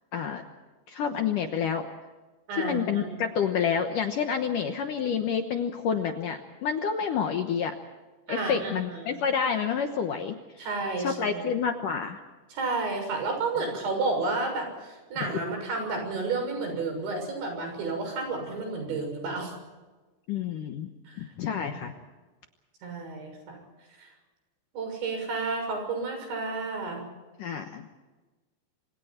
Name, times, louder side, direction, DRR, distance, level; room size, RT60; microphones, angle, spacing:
voice 1, 0.1-0.4 0.9-1.9 2.6-7.8 8.3-10.7 11.0-12.2 20.3-20.9 21.2-21.9 27.4-27.9, left 7 dB, 70° left, 6 dB, 2.1 m, -29 dB
voice 2, 2.5-3.1 8.3-9.2 10.6-11.4 12.5-19.5 21.1-21.2 21.7-21.8 22.8-23.6 24.0-24.1 24.7-27.0, right 3 dB, 80° right, 3 dB, 9.1 m, -31 dB
28.0 x 26.5 x 4.5 m, 1.2 s
omnidirectional pair, 5.2 m